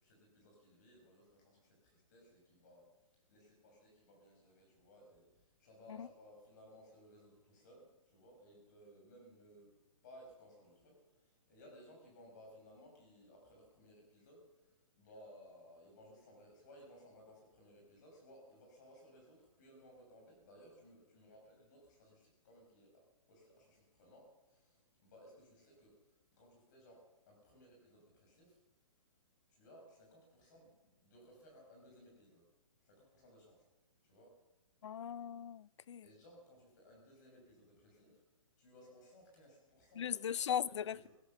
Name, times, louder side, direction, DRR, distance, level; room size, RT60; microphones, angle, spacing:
voice 1, 0.0-2.9 3.3-9.8 10.0-28.6 29.5-32.5 32.8-33.7 34.0-34.4 36.0-38.2 38.6-41.1, equal, 30° left, 6.0 m, -61 dB
voice 2, 34.8-36.0 40.0-41.0, left 9 dB, 55° left, 0.4 m, -38 dB
16.5 x 12.0 x 6.8 m
hypercardioid pair, 175°, 17 cm